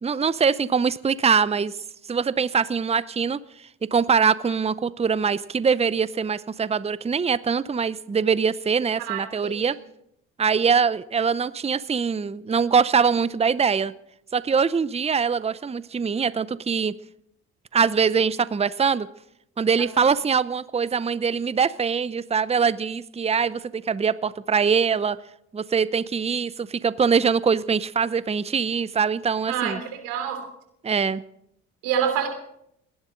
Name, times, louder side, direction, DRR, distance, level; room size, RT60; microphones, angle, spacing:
voice 1, 0.0-1.7 2.1-3.4 3.9-9.8 10.4-13.9 14.3-16.9 17.7-19.1 19.6-25.2 25.5-29.8 30.8-31.2, right 6 dB, 20° right, 17 dB, 0.7 m, -23 dB
voice 2, 9.0-9.7 29.5-30.4 31.8-32.3, right 8 dB, 80° right, 5 dB, 3.0 m, -27 dB
29.0 x 11.0 x 3.9 m, 0.76 s
hypercardioid pair, 55°, 33 cm